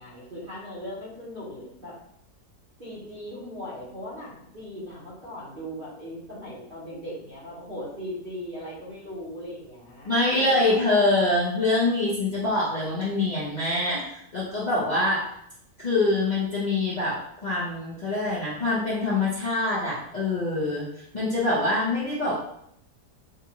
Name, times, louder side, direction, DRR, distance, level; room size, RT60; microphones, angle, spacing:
voice 1, 0.0-2.0 2.8-10.8, equal, 35° right, -7 dB, 1.2 m, -39 dB
voice 2, 10.0-14.0 14.3-15.2 15.8-20.9 21.1-22.3, left 2 dB, 30° left, -9 dB, 0.9 m, -24 dB
4.9 x 2.6 x 2.9 m, 0.73 s
omnidirectional pair, 1.8 m